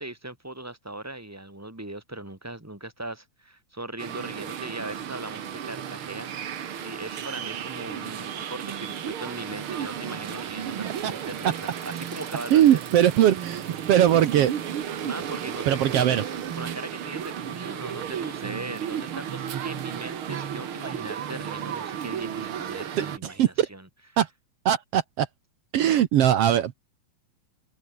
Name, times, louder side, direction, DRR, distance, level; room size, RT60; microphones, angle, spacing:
voice 1, 0.0-12.8 15.0-23.9, right 2 dB, 5° right, 3.3 m, -39 dB
sound 1, 4.0-23.2, right 9 dB, 55° right, 1.5 m, -34 dB
voice 2, 12.5-14.5 15.7-16.2 23.2-23.7 24.2-24.3 24.6-25.3 25.7-26.7, right 11 dB, 85° right, 1.3 m, -20 dB
omnidirectional pair, 4.4 m